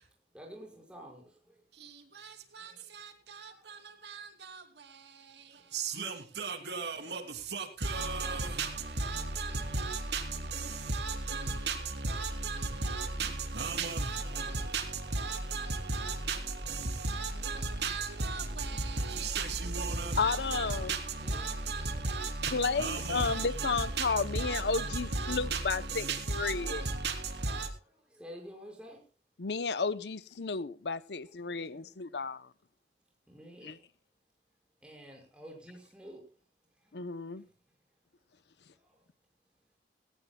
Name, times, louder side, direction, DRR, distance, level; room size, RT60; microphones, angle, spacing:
voice 1, 0.3-1.1 2.6-2.8 3.6-3.7 21.2-21.5 28.2-29.0 31.5-31.8 33.3-33.7 34.8-36.2 36.9-37.0, equal, 5° right, 5.5 m, -49 dB
voice 2, 5.7-7.2 7.5-8.7 9.0-10.2 10.5-10.6 10.9-11.8 12.0-14.8 15.1-16.4 16.7-16.8 17.0-21.0 21.3-24.1 24.3-25.6 25.9-27.1 27.4-27.7, right 3 dB, 75° right, 3.0 m, -34 dB
voice 3, 20.2-20.9 22.5-26.0 26.3-26.8 29.4-32.5 33.6-33.8 36.9-37.4, left 4 dB, 75° left, 0.7 m, -32 dB
19.5 x 17.5 x 2.3 m
head